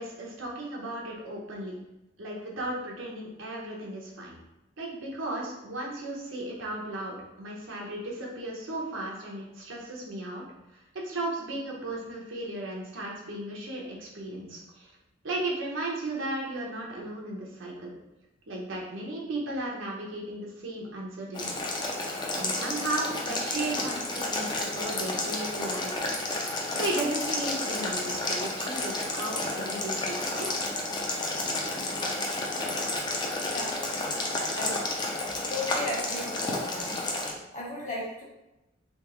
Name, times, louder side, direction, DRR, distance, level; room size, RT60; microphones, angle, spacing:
voice 1, 0.0-1.7 2.2-4.4 4.8-10.4 10.7-14.9 15.2-17.9 18.5-21.6 22.3-26.0 26.5-30.5, right 2 dB, 90° right, -3 dB, 1.0 m, -35 dB
Boiling, 21.3-37.3, left 2 dB, 25° left, 0.5 m, -31 dB
voice 2, 34.3-34.8 35.5-37.0 37.5-38.2, left 1 dB, 40° left, -4 dB, 1.2 m, -35 dB
3.5 x 3.0 x 3.0 m, 0.95 s
head